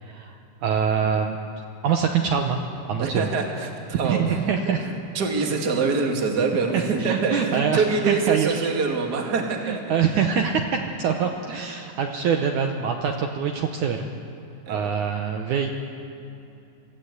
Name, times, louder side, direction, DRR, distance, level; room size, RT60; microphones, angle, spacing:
voice 1, 0.0-1.4 1.8-2.6 2.8-3.3 4.0-4.9 6.7-8.7 9.6-14.1 14.7-15.7, right 7 dB, 70° right, 3 dB, 2.3 m, -24 dB
voice 2, 3.0-4.7 5.1-10.0 14.7-14.9, right 4 dB, 35° right, 2 dB, 2.2 m, -25 dB
27.0 x 15.0 x 8.3 m, 2.7 s
omnidirectional pair, 4.1 m